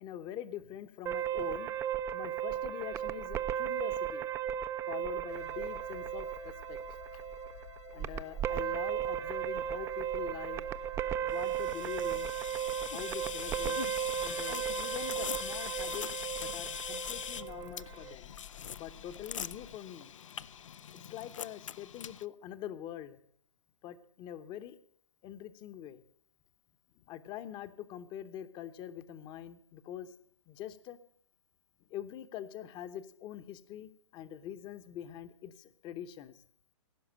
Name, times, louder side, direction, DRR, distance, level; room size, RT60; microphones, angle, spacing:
voice 1, 0.0-1.7 2.1-4.3 4.9-6.8 7.1-7.2 7.9-10.7 11.2-12.3 12.9-13.8 14.2-16.1 16.3-18.3 18.8-20.1 20.9-23.2 23.8-24.8 25.2-26.0 27.0-30.1 30.5-31.0 31.9-36.4, left 10 dB, 30° left, 12 dB, 0.9 m, -44 dB
sound 1, 1.1-18.1, right 10 dB, 20° right, 0.4 m, -36 dB
sound 2, 5.3-19.8, left 9 dB, 65° left, 1.1 m, -52 dB
sound 3, 11.4-22.2, left 8 dB, 80° left, 0.5 m, -42 dB
16.0 x 5.9 x 8.7 m, 0.64 s
hypercardioid pair, 125°, 16 cm